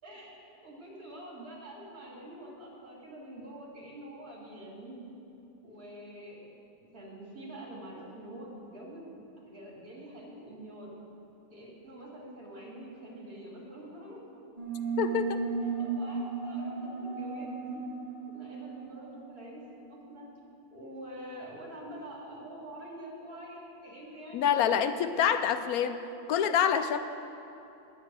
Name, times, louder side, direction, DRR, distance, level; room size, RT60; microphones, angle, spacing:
voice 1, 0.0-5.1 5.6-6.5 6.9-9.2 9.5-11.0 11.5-14.2 15.8-17.8 18.3-19.6 19.9-20.3 20.7-24.7 25.0-25.4, right 1 dB, 60° right, -4 dB, 3.3 m, -46 dB
sound 1, 14.6-19.8, right 4 dB, 25° right, 1.0 m, -35 dB
voice 2, 15.0-15.4 24.3-26.0 26.3-27.0, left 8 dB, 70° left, 9 dB, 1.0 m, -26 dB
9.9 x 7.3 x 9.3 m, 2.8 s
omnidirectional pair, 1.7 m